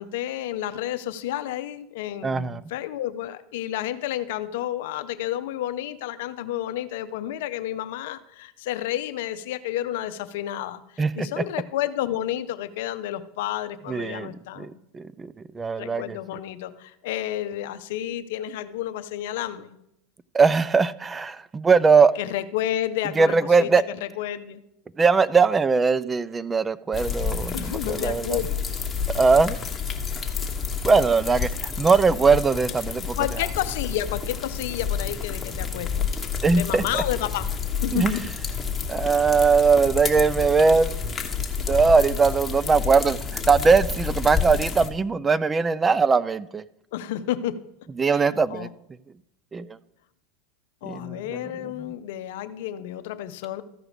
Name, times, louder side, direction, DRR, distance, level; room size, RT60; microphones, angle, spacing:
voice 1, 0.0-14.7 15.8-19.8 22.2-23.7 24.0-24.6 27.5-28.4 33.2-36.1 36.5-37.5 37.8-38.2 46.9-47.6 48.0-48.2 48.5-48.7 50.8-53.6, left 12 dB, 75° left, 0.6 m, -30 dB
voice 2, 2.2-2.6 11.0-11.4 13.9-16.2 20.3-22.1 23.2-23.8 25.0-28.4 29.1-29.6 30.8-33.2 36.4-37.0 37.9-38.1 38.9-40.9 41.7-46.6 48.0-48.7 49.5-49.8 50.8-51.9, right 4 dB, 20° right, 0.3 m, -21 dB
sound 1, 26.9-44.9, left 6 dB, 20° left, 1.2 m, -30 dB
14.0 x 4.9 x 4.9 m
hypercardioid pair, 105°, 0 cm